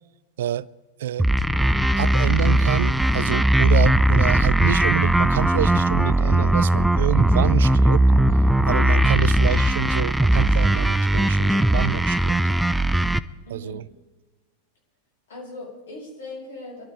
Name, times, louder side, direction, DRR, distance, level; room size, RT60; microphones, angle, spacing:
sound 1, 1.2-13.2, right 1 dB, 5° right, 0.5 m, -19 dB
voice 1, 2.0-8.1 8.7-12.4 13.5-13.8, right 12 dB, 65° right, 0.4 m, -27 dB
voice 2, 13.5-14.0 15.3-16.8, left 2 dB, 70° left, 6.2 m, -39 dB
26.0 x 12.5 x 3.6 m
figure-of-eight pair, 90°, 0 cm